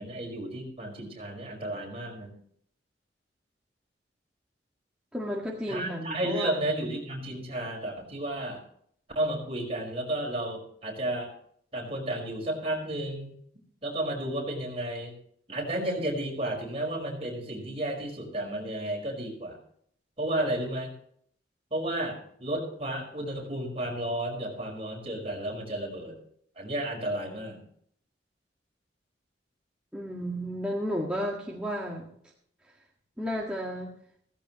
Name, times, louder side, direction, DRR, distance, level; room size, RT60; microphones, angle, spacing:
voice 1, 0.0-2.3 5.7-8.6 9.2-11.3 11.7-13.3 13.8-15.1 15.5-19.6 20.2-20.9 21.7-26.2 26.6-27.6, right 1 dB, 35° right, 0 dB, 5.2 m, -32 dB
voice 2, 5.1-6.9 29.9-32.1 33.2-34.0, equal, 5° right, -3 dB, 1.8 m, -33 dB
16.0 x 15.0 x 3.1 m, 0.65 s
head